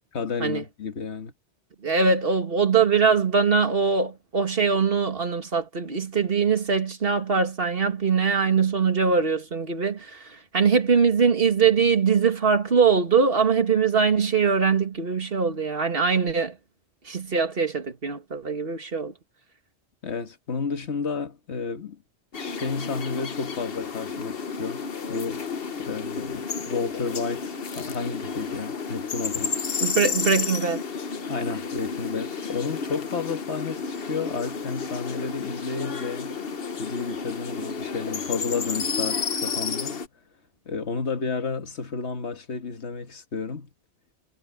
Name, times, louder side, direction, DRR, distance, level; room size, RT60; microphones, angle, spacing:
voice 1, 0.1-1.3 20.0-22.0 22.4-25.5 25.8-29.6 31.3-36.4 36.8-40.0 40.7-43.7, left 5 dB, 85° left, 1.8 m, -31 dB
voice 2, 1.8-16.6 17.0-19.1 29.8-30.8, right 5 dB, 60° right, 2.2 m, -22 dB
sound 1, 22.3-40.1, left 5 dB, 60° left, 1.3 m, -31 dB
omnidirectional pair, 1.1 m